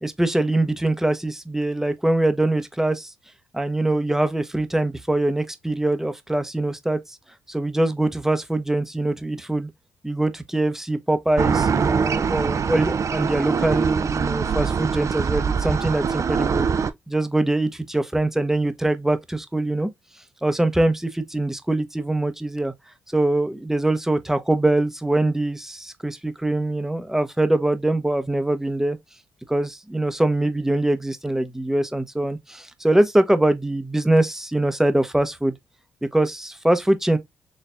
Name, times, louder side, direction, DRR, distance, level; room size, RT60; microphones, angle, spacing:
voice 1, 0.0-3.1 3.5-7.0 7.5-9.7 10.0-16.7 17.1-19.9 20.4-22.7 23.1-29.0 29.5-35.5 36.0-37.2, right 1 dB, 5° right, 0.9 m, -23 dB
sound 1, 11.4-16.9, right 6 dB, 50° right, 0.5 m, -23 dB
4.2 x 3.2 x 2.5 m
supercardioid pair, 60°, 7 cm